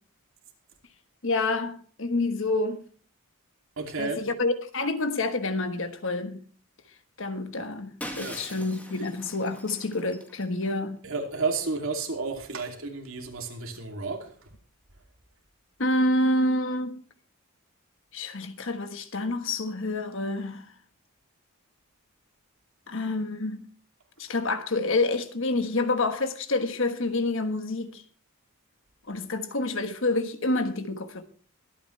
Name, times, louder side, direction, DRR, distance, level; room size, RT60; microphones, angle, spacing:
voice 1, 1.2-2.8 4.0-6.4 7.2-11.0 15.8-17.0 18.1-20.6 22.9-23.6 24.2-28.0 29.1-31.2, left 2 dB, 60° left, 1.3 m, -28 dB
voice 2, 3.8-4.2 8.2-8.6 11.0-14.3, right 4 dB, 65° right, 2.8 m, -32 dB
Shatter, 8.0-10.7, equal, 5° left, 2.0 m, -42 dB
23.0 x 9.1 x 3.3 m
head